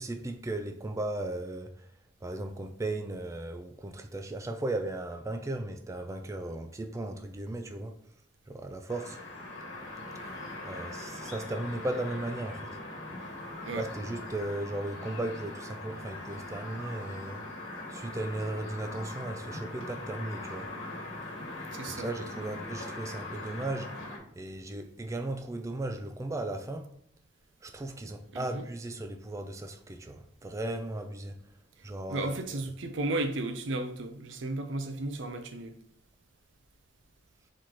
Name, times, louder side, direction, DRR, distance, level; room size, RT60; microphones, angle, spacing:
voice 1, 0.0-1.9 2.2-8.0 8.5-9.2 10.3-12.8 13.7-17.4 17.9-20.7 21.9-23.9 24.3-26.9 27.6-31.4 31.8-32.3, right 2 dB, 15° right, 0.3 m, -36 dB
sound 1, 8.9-24.2, left 2 dB, 85° left, 1.2 m, -41 dB
voice 2, 21.7-22.1 28.3-28.6 32.1-35.8, right 2 dB, 70° right, 0.6 m, -34 dB
4.3 x 3.1 x 3.8 m
head